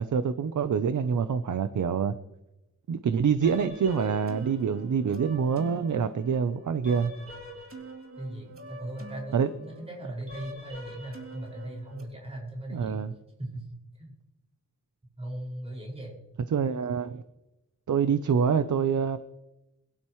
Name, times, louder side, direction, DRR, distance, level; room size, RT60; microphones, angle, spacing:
voice 1, 0.0-2.1 2.9-7.1 9.3-9.5 12.7-13.1 16.5-17.2 17.9-19.2, right 6 dB, 70° right, 11 dB, 0.7 m, -26 dB
sound 1, 3.4-12.0, right 1 dB, 45° right, 3.0 m, -45 dB
voice 2, 8.2-13.0 13.4-13.7 13.9-14.1 15.2-16.2, right 1 dB, 20° right, -3 dB, 5.6 m, -39 dB
23.0 x 12.0 x 3.2 m, 0.95 s
wide cardioid pair, 155°, 31 cm